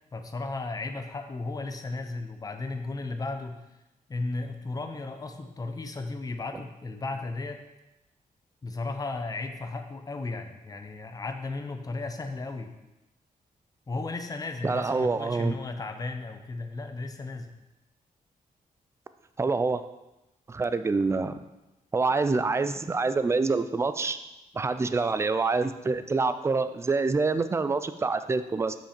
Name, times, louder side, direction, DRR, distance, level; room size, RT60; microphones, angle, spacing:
voice 1, 0.1-3.6 4.1-7.6 8.6-12.7 13.9-17.5, left 3 dB, 25° left, 6 dB, 0.6 m, -35 dB
voice 2, 14.6-15.6 19.4-19.8 20.5-21.4 21.9-24.2 24.5-28.8, right 4 dB, 20° right, 11 dB, 0.4 m, -26 dB
7.3 x 5.7 x 4.4 m, 0.97 s
wide cardioid pair, 145°, 15 cm